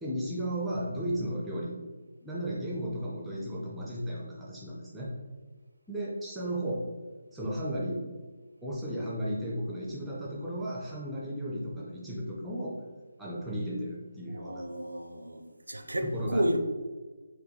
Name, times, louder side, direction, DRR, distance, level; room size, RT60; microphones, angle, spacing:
voice 1, 0.0-1.8 2.2-5.1 5.9-6.8 7.3-8.0 8.6-12.8 13.2-14.6 16.0-16.6, equal, 5° right, -5 dB, 0.4 m, -34 dB
voice 2, 14.3-15.4 15.7-16.6, equal, 75° right, 5 dB, 0.4 m, -31 dB
4.3 x 2.1 x 3.3 m, 1.3 s
figure-of-eight pair, 150°, 0 cm